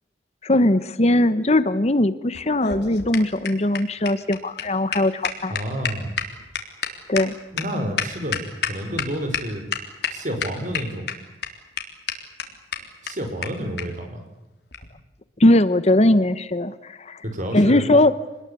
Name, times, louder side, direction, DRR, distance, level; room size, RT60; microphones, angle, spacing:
voice 1, 0.4-5.5 7.1-7.3 15.4-17.2 17.5-18.1, left 1 dB, 35° left, 14 dB, 0.9 m, -19 dB
sound 1, 2.3-9.0 9.3-9.4 9.7-10.1 10.4-11.1 11.4-11.5 11.8-11.9 12.1-12.2 12.4-12.5 12.7-12.8 13.1-13.2 13.4-13.5 13.8-13.9 14.7-14.9, left 7 dB, 65° left, 3.6 m, -28 dB
voice 2, 5.2-6.2 7.5-9.6 10.1-11.1 13.0-14.2 17.2-17.9, equal, 45° right, 6 dB, 5.4 m, -29 dB
27.0 x 20.5 x 8.5 m, 0.98 s
head